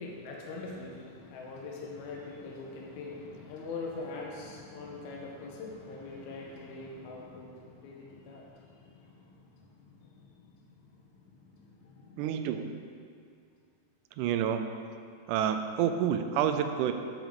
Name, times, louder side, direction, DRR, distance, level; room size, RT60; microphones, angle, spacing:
voice 1, 0.0-12.3, left 3 dB, 70° left, -1 dB, 2.3 m, -43 dB
voice 2, 12.2-12.9 14.2-14.8 15.3-16.9, right 9 dB, 85° right, 7 dB, 2.0 m, -29 dB
10.5 x 7.4 x 3.7 m, 2.2 s
omnidirectional pair, 3.7 m